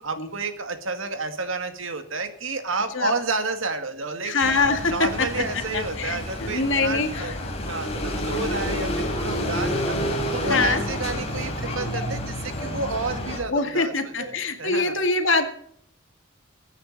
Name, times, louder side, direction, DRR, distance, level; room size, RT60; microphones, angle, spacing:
voice 1, 0.0-4.4 4.8-7.4 7.6-15.0, right 3 dB, 90° right, 7 dB, 2.2 m, -30 dB
voice 2, 4.2-5.3 5.7-7.3 8.3-8.4 10.5-10.8 13.5-15.5, left 3 dB, 70° left, 6 dB, 2.2 m, -24 dB
sound 1, 4.4-13.4, equal, 35° left, 3.8 m, -29 dB
21.5 x 9.9 x 4.1 m, 0.66 s
head